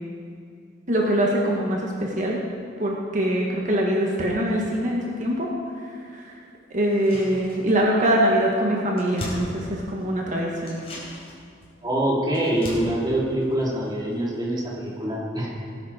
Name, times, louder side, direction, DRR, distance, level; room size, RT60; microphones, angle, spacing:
voice 1, 0.9-2.4 2.8-5.5 6.1-6.3 6.7-10.8, right 1 dB, 40° right, -2 dB, 1.5 m, -23 dB
sound 1, 6.8-8.0 8.3-8.4 8.6-10.2 10.6-14.4 14.6-14.7, equal, 30° left, 4.1 m, -39 dB
voice 2, 11.8-15.5, right 1 dB, 25° right, -6 dB, 3.3 m, -25 dB
19.5 x 10.0 x 4.4 m, 2.4 s
head